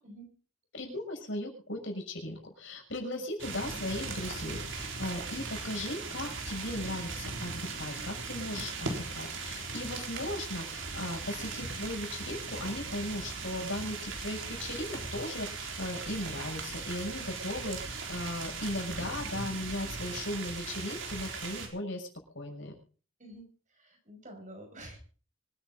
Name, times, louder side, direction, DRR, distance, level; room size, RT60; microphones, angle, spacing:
voice 1, 0.7-22.1 22.3-22.7, left 1 dB, 75° left, 2 dB, 6.4 m, -37 dB
sound 1, 3.4-21.7, right 4 dB, 80° right, 4.0 m, -38 dB
voice 2, 23.2-25.0, right 1 dB, 40° right, 3 dB, 5.5 m, -49 dB
25.5 x 10.0 x 3.8 m, 0.40 s
head